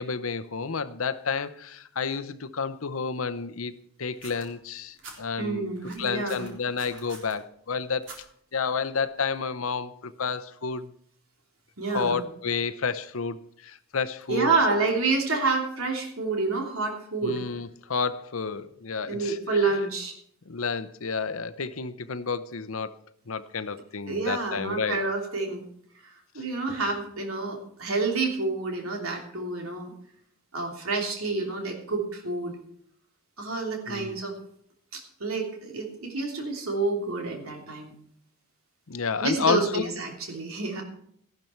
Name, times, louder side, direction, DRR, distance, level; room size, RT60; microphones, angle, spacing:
voice 1, 0.0-3.7 4.0-8.0 8.5-10.9 11.9-14.5 17.2-19.4 20.5-22.9 23.3-25.0 33.9-34.2 38.9-39.9, left 5 dB, 80° left, 0.8 m, -30 dB
sound 1, 4.2-5.2 5.7-7.3 8.0-8.2 9.1-9.2, right 3 dB, 60° right, 3.6 m, -45 dB
voice 2, 5.4-6.5 11.8-12.2 14.3-17.4 19.0-20.1 24.1-25.6 26.0-29.9 30.5-32.6 33.4-34.4 34.9-38.0 39.2-40.8, right 3 dB, 90° right, 3.1 m, -28 dB
14.0 x 12.0 x 4.5 m
head